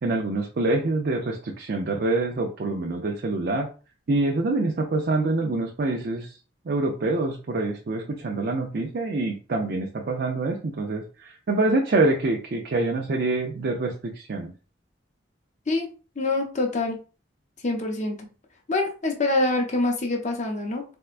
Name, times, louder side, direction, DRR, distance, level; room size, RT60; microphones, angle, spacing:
voice 1, 0.0-3.7 4.1-6.4 6.7-14.5, right 2 dB, 55° right, 1 dB, 0.5 m, -26 dB
voice 2, 16.2-17.0 17.6-18.3 18.7-20.8, left 2 dB, 40° left, 2 dB, 0.6 m, -25 dB
4.4 x 2.2 x 2.4 m, 0.35 s
head